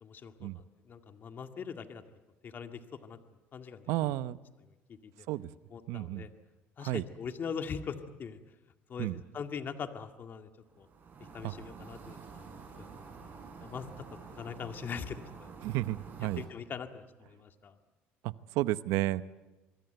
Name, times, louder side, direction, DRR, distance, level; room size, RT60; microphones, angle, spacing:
voice 1, 0.0-2.0 2.4-3.2 3.5-4.1 4.9-5.3 5.7-6.3 6.8-8.4 8.9-10.5 10.8-10.9 11.3-12.5 13.6-13.9 14.3-15.5 16.4-17.7, left 6 dB, 40° left, 7 dB, 2.1 m, -41 dB
voice 2, 3.9-4.4 5.3-5.5 5.9-6.3 6.8-7.0 9.0-9.2 11.4-11.5 15.6-16.4 18.2-19.2, right 16 dB, 80° right, 15 dB, 0.8 m, -32 dB
sound 1, 10.7-16.5, right 5 dB, 40° right, 7.4 m, -49 dB
26.0 x 22.5 x 8.0 m, 1.1 s
cardioid pair, 105°, 5 cm